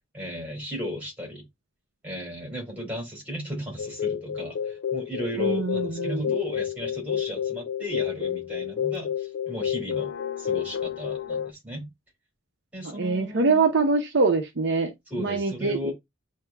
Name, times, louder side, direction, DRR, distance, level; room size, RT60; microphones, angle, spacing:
voice 1, 0.1-1.4 2.0-10.1 10.4-11.9 12.7-13.6 15.1-15.9, equal, 10° right, 2.4 m, -35 dB
Internal Flight, 3.8-11.5, left 9 dB, 55° left, 0.4 m, -30 dB
voice 2, 5.4-6.4 12.8-14.9 15.2-15.9, right 4 dB, 55° right, 0.7 m, -24 dB
8.0 x 2.8 x 2.2 m
head